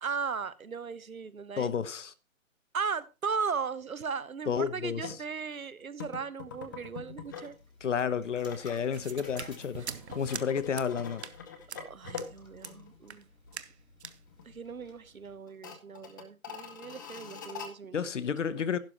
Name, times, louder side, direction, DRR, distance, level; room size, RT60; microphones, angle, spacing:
voice 1, 0.0-1.8 2.7-7.6 11.8-13.3 14.4-17.9, right 5 dB, 75° right, 1.0 m, -37 dB
voice 2, 1.6-2.1 4.5-5.2 7.8-11.2 17.9-18.8, left 7 dB, 60° left, 0.9 m, -31 dB
sound 1, 5.0-5.2 6.0-7.6 7.9-13.2 13.5-13.6 14.0-14.6 14.8-14.9 15.5-17.7, left 6 dB, 15° left, 0.6 m, -44 dB
sound 2, 6.5-15.3, left 2 dB, 85° left, 3.9 m, -56 dB
sound 3, 8.9-10.5 10.8-10.9 11.2-11.4 11.7-11.8 12.2-12.3 12.6-12.7 13.1-13.2 13.5-13.7 14.0-14.2, right 7 dB, 50° right, 0.8 m, -42 dB
11.5 x 10.5 x 2.9 m
figure-of-eight pair, 135°, 42 cm